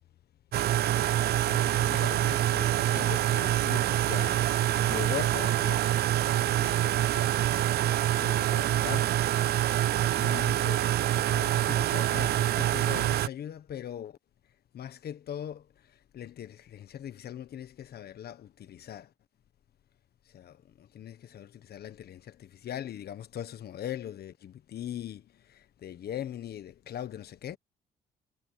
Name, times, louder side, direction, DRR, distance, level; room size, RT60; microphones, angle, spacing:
sound 1, 0.5-13.3, right 13 dB, 65° right, 0.5 m, -26 dB
voice 1, 1.4-4.4 4.8-7.4 8.2-9.1 10.2-14.2 14.7-15.6 16.1-19.1 20.3-25.2 25.5-27.6, left 10 dB, 65° left, 1.3 m, -40 dB
cardioid pair, 85°, 18 cm